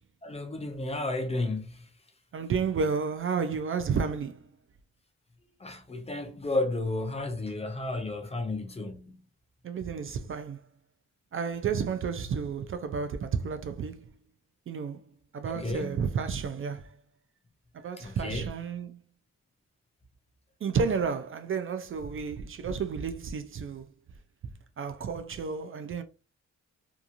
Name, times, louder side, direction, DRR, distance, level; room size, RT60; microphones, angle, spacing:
voice 1, 0.2-1.8 5.6-9.2 15.5-16.0 18.0-18.5, left 2 dB, 20° left, 0.5 m, -32 dB
voice 2, 2.3-4.5 9.6-10.6 11.3-14.0 14.7-15.0 15.3-16.9 17.7-19.0 20.6-23.9 24.8-26.0, right 5 dB, 45° right, 0.4 m, -31 dB
2.8 x 2.4 x 2.4 m
cardioid pair, 105°, 30 cm